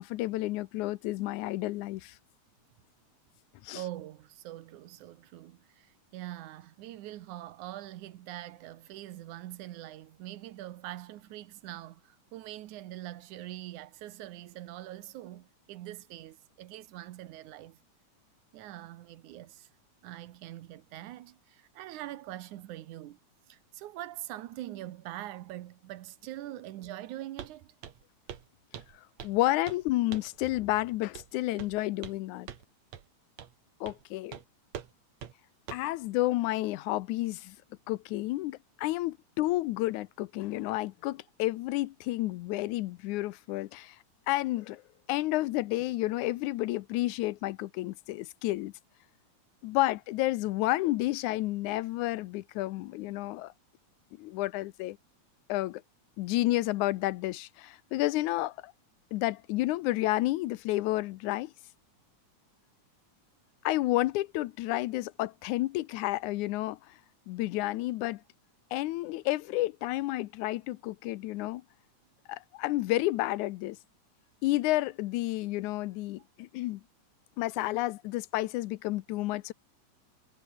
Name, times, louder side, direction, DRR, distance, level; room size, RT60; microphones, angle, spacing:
voice 1, 0.0-2.2 3.6-3.8 29.2-32.5 33.8-34.4 35.7-37.6 37.9-44.0 44.3-44.8 45.1-48.7 49.6-53.5 54.2-55.0 55.5-55.8 56.2-58.7 59.1-61.5 63.6-67.0 67.3-68.2 68.7-71.6 72.3-73.8 74.4-76.8 77.4-79.5, left 17 dB, 85° left, 2.1 m, -30 dB
voice 2, 3.7-17.8 18.5-19.7 20.0-23.2 23.5-27.7, right 14 dB, 85° right, 2.4 m, -43 dB
Walk footsteps, 27.4-27.6 27.8-28.0 28.3-28.5 28.7-29.4 29.7-29.8 30.1-30.4 31.2-31.3 31.6-32.2 32.5-32.6 32.9-33.0 33.4-33.5 33.9-34.0 34.3-34.4 34.7-34.9 35.2-35.3 35.7-35.9, right 9 dB, 65° right, 3.0 m, -44 dB
omnidirectional pair, 3.4 m